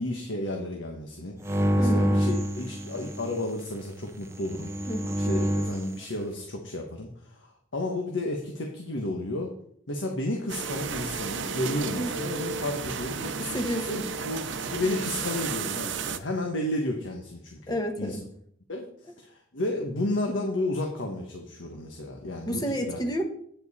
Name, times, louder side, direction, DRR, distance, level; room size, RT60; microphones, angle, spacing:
voice 1, 0.0-4.9 5.3-9.5 9.9-13.4 13.9-14.5 14.7-18.2 18.7-23.0, left 1 dB, 85° left, 2 dB, 1.2 m, -32 dB
sound 1, 1.4-3.4 4.4-5.9, equal, 15° right, 0.6 m, -26 dB
voice 2, 1.8-2.1 4.9-5.1 11.9-12.1 13.4-14.1 17.7-18.2 22.5-23.2, equal, 20° left, 4 dB, 1.1 m, -30 dB
sound 2, 10.5-16.2, right 5 dB, 75° right, 0.7 m, -33 dB
9.1 x 7.4 x 4.2 m, 0.66 s
head